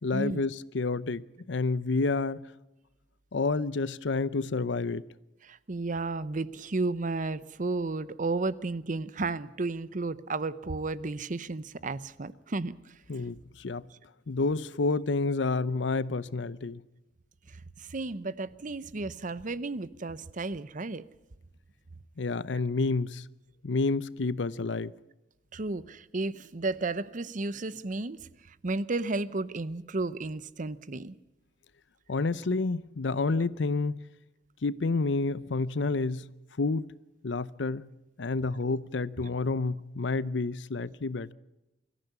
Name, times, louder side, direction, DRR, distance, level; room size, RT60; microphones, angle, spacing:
voice 1, 0.0-2.5 3.3-5.0 13.1-13.9 14.3-16.8 22.2-23.2 23.6-24.9 32.1-34.0 34.6-36.3 36.6-36.9 37.2-37.9 38.2-41.3, left 3 dB, 75° left, 0.7 m, -29 dB
voice 2, 5.5-12.7 17.8-21.0 25.5-28.2 28.6-31.1, right 3 dB, 45° right, 0.8 m, -33 dB
23.5 x 14.5 x 8.3 m
head